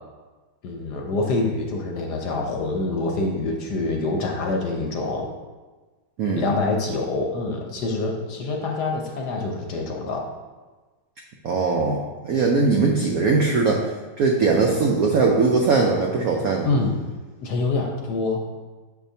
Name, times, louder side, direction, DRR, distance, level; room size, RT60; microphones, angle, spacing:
voice 1, 0.6-5.3 6.4-10.3 14.5-14.7 16.6-17.0 17.4-18.4, left 3 dB, 65° left, 1 dB, 1.2 m, -26 dB
voice 2, 11.4-13.8 14.2-16.7, right 4 dB, 80° right, 0 dB, 0.8 m, -20 dB
7.2 x 4.9 x 2.7 m, 1.3 s
omnidirectional pair, 2.2 m